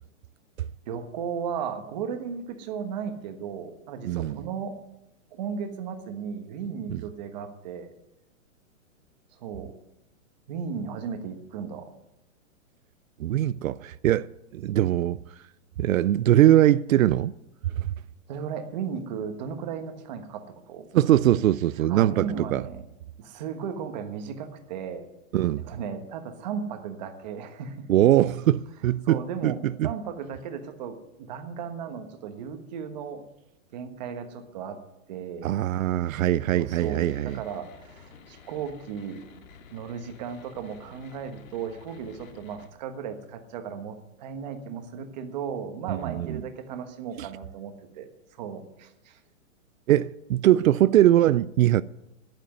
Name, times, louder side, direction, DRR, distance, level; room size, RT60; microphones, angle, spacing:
voice 1, 0.8-4.7 5.3-7.9 9.4-9.7 10.5-11.9 18.3-20.9 21.9-22.8 23.2-25.1 25.6-28.0 29.0-29.6 29.8-33.2 33.7-34.8 35.1-35.5 36.5-39.2 39.7-49.2, right 7 dB, 35° right, 1.3 m, -35 dB
voice 2, 4.1-4.4 6.9-7.0 13.2-15.2 15.8-17.3 17.8-17.9 20.9-22.6 25.3-25.6 27.9-29.5 29.8-29.9 35.4-37.4 45.9-46.4 49.9-51.8, right 13 dB, 85° right, 0.6 m, -22 dB
sound 1, 36.7-42.7, left 5 dB, 85° left, 2.1 m, -52 dB
10.5 x 9.0 x 9.4 m
hypercardioid pair, 175°, 40 cm